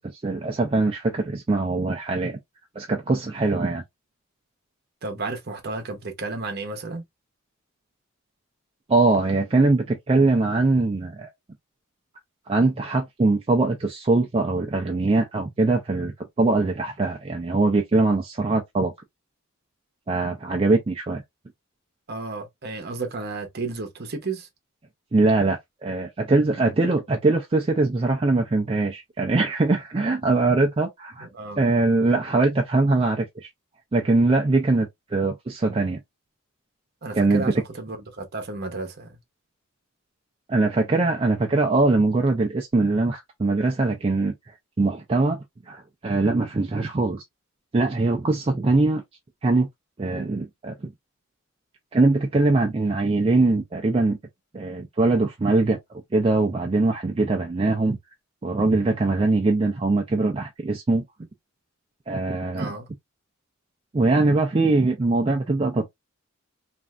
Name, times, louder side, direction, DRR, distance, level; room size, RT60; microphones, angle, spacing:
voice 1, 0.0-2.4 2.8-3.8 8.9-11.3 12.5-18.9 20.1-21.2 25.1-31.3 31.6-33.5 33.9-36.0 37.2-37.5 40.5-45.4 45.7-47.2 47.7-49.0 49.4-49.7 50.0-50.9 51.9-54.2 54.5-58.0 58.4-61.0 62.1-62.7 63.9-65.9, right 3 dB, 25° right, 0.4 m, -22 dB
voice 2, 5.0-7.0 22.1-24.5 31.2-31.7 37.0-39.2 62.5-62.9, right 3 dB, 50° right, 0.8 m, -33 dB
3.2 x 2.5 x 2.3 m
head